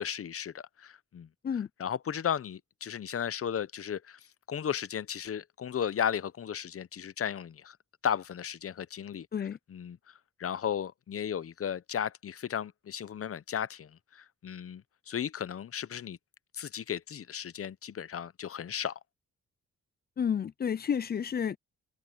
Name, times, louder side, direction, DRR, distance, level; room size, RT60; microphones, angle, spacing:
voice 1, 0.0-1.3 1.8-4.2 4.5-7.8 8.0-9.3 9.7-10.1 10.4-16.2 16.5-19.0, left 8 dB, 50° left, 0.7 m, -35 dB
voice 2, 20.2-21.6, left 7 dB, 35° left, 0.4 m, -30 dB
cardioid pair, 95°, 29 cm